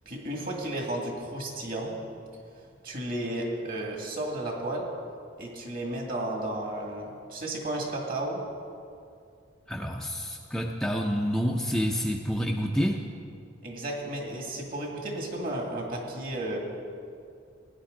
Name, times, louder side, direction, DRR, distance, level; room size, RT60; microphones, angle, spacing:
voice 1, 0.1-1.9 2.8-4.9 5.4-8.4 13.6-16.6, right 1 dB, 50° right, 0 dB, 2.1 m, -33 dB
voice 2, 9.7-13.0, equal, 5° left, 0 dB, 0.5 m, -28 dB
17.5 x 9.9 x 3.8 m, 2.3 s
head